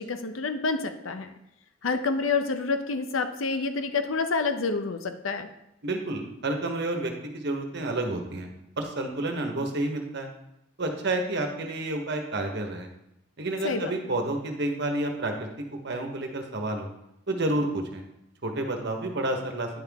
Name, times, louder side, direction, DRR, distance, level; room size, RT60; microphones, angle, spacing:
voice 1, 0.0-1.3 1.8-5.5 13.6-14.1, left 4 dB, 85° left, 8 dB, 0.8 m, -28 dB
voice 2, 5.8-8.5 8.8-10.3 10.8-12.9 13.4-15.5 15.8-16.9 17.3-18.0 18.4-19.7, right 2 dB, 60° right, 3 dB, 1.2 m, -30 dB
9.8 x 5.7 x 3.6 m, 0.82 s
head